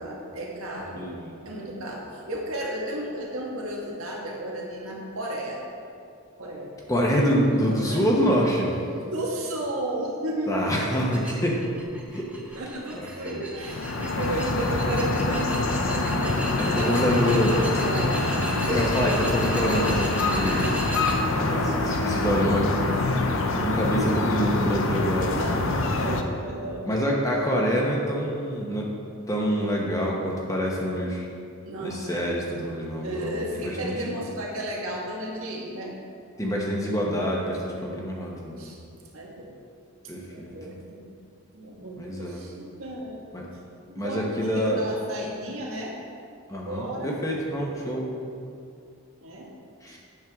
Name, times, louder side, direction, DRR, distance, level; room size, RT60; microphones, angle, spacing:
voice 1, 0.0-1.1 1.5-5.6 6.4-6.7 7.5-8.1 9.0-10.9 12.5-19.0 21.5-22.6 24.1-24.7 25.4-25.6 25.9-26.9 31.6-32.2 33.0-35.9 38.6-38.8 39.1-39.5 40.3-41.0 41.5-43.2 43.9-45.9 46.5-47.2 49.2-49.5, right 1 dB, 75° right, -2 dB, 1.6 m, -33 dB
voice 2, 1.0-1.4 6.9-8.8 10.5-11.6 12.1-12.6 12.9-13.4 16.6-17.5 18.7-20.8 21.3-22.9 23.6-25.4 26.8-28.9 29.3-31.3 31.8-34.0 36.4-38.7 40.1-40.7 42.0-42.4 43.3-43.5 44.0-44.8 46.5-48.1 49.8-50.0, equal, 15° left, -2 dB, 1.0 m, -26 dB
sound 1, 11.1-21.2, right 1 dB, 5° right, 0.8 m, -36 dB
sound 2, 13.6-26.2, left 2 dB, 60° left, 0.6 m, -25 dB
9.0 x 7.4 x 3.6 m, 2.4 s
head